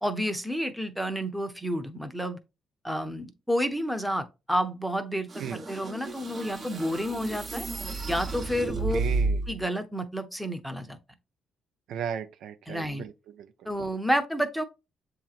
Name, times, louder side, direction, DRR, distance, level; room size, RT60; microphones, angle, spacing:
voice 1, 0.0-2.4 2.8-7.7 8.1-9.0 9.5-11.0 12.7-13.0 13.7-14.6, equal, ahead, 0.7 m, -30 dB
sound 1, 5.3-9.6, right 3 dB, 40° right, 0.8 m, -32 dB
voice 2, 8.9-9.4 11.9-13.5, right 8 dB, 80° right, 0.4 m, -36 dB
7.3 x 2.9 x 2.4 m
cardioid pair, 90°, 0 cm